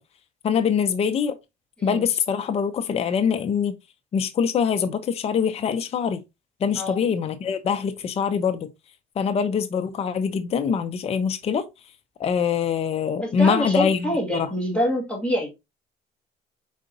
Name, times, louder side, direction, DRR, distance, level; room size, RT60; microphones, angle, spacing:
voice 1, 0.4-1.4 1.8-3.7 4.1-6.2 6.6-8.7 9.2-11.7 12.2-14.5, left 7 dB, 35° left, 0.5 m, -24 dB
voice 2, 13.2-15.5, equal, 5° left, 2.0 m, -25 dB
4.8 x 3.8 x 2.7 m
cardioid pair, 110°, 17 cm